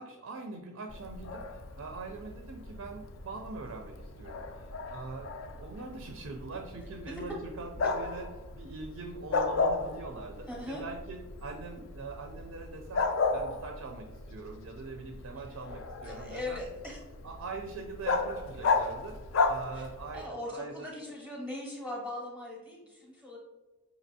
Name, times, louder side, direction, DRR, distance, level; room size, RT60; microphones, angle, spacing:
voice 1, 0.0-16.6 17.2-20.9, right 3 dB, 70° right, 3 dB, 0.4 m, -43 dB
Bark, 0.9-20.3, left 4 dB, 60° left, 0.4 m, -35 dB
voice 2, 10.5-10.8 16.0-17.0 19.7-19.8 20.1-23.4, left 1 dB, 5° left, -4 dB, 0.7 m, -40 dB
5.1 x 2.8 x 2.7 m, 1.2 s
head